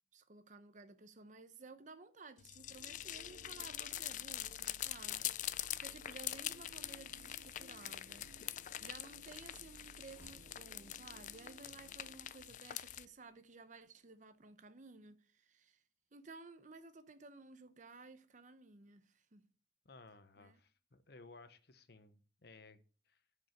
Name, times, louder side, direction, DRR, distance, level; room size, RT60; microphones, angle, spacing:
voice 1, 0.1-15.8 16.1-19.4 20.4-20.6, right 3 dB, 45° right, 0.8 m, -56 dB
sound 1, 2.4-13.0, left 13 dB, 45° left, 0.3 m, -44 dB
sound 2, 2.6-13.4, right 3 dB, 80° right, 0.5 m, -61 dB
sound 3, 5.8-11.6, equal, 10° right, 1.9 m, -68 dB
voice 2, 11.7-12.1 19.8-22.8 23.1-23.2, left 3 dB, 60° left, 0.9 m, -59 dB
7.5 x 5.2 x 6.5 m
head